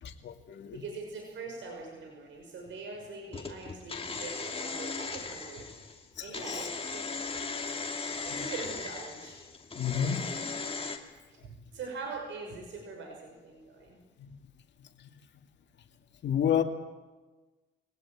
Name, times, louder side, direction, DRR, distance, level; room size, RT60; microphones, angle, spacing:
voice 1, 0.0-0.8 6.2-6.7 8.3-8.4 9.7-10.4 14.2-14.3 15.0-15.1 16.2-16.6, left 9 dB, 65° left, 4 dB, 2.5 m, -31 dB
voice 2, 0.7-7.5 8.2-9.4 9.8-10.5 11.7-14.0, right 4 dB, 70° right, 1 dB, 5.8 m, -43 dB
sound 1, 3.3-11.0, left 4 dB, 30° left, 2.6 m, -38 dB
22.5 x 18.5 x 8.8 m, 1.2 s
cardioid pair, 90°, 20 cm